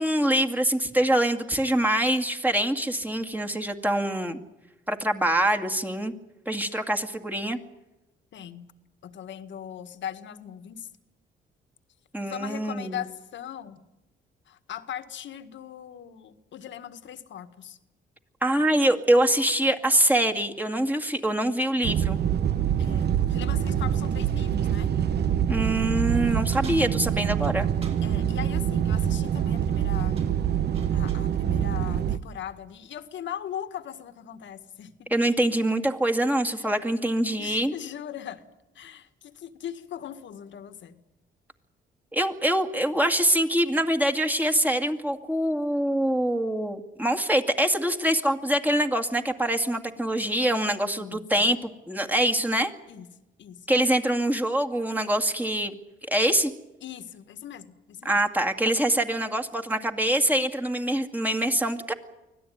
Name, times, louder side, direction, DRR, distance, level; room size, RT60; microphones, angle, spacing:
voice 1, 0.0-4.4 4.9-6.1 6.5-7.6 12.1-13.0 18.4-22.2 25.5-27.7 35.1-37.7 42.1-52.7 53.7-55.7 56.1-56.5 58.0-61.9, right 1 dB, 10° right, 3 dB, 2.2 m, -24 dB
voice 2, 8.3-8.7 9.0-10.9 12.2-13.8 14.5-17.8 22.8-24.9 28.0-30.2 30.9-34.9 37.4-38.4 38.8-41.0 50.8-51.2 52.9-53.1 53.4-53.7 56.8-58.2, left 10 dB, 70° left, 10 dB, 1.9 m, -39 dB
sound 1, 21.8-32.2, right 9 dB, 55° right, 1.0 m, -25 dB
sound 2, 26.5-28.1 29.5-29.8 30.2-31.3, right 4 dB, 30° right, 5.3 m, -49 dB
25.0 x 17.0 x 9.4 m, 1.0 s
cardioid pair, 90°, 20 cm